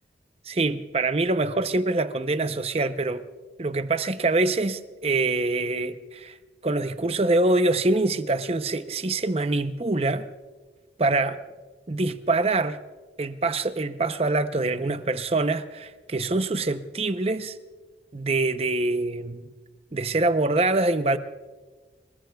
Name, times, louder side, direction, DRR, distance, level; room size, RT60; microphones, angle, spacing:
voice 1, 0.5-3.2 3.6-6.4 6.6-10.3 11.0-11.4 11.9-12.8 13.2-17.5 18.1-19.5 19.9-21.2, right 2 dB, 35° right, 0.7 m, -25 dB
26.5 x 22.0 x 2.3 m
head